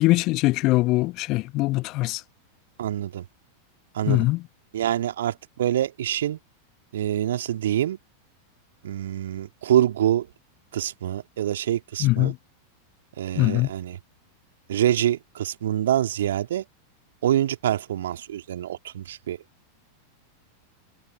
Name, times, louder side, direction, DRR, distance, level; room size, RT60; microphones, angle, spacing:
voice 1, 0.0-2.2 4.1-4.4 12.0-12.4 13.4-13.7, left 20 dB, 40° left, 1.3 m, -22 dB
voice 2, 2.8-3.2 3.9-4.2 4.7-6.4 6.9-8.0 8.8-10.3 10.7-12.3 13.2-14.0 14.7-16.6 17.2-19.4, right 11 dB, 60° right, 2.4 m, -25 dB
figure-of-eight pair, 90°, 0 cm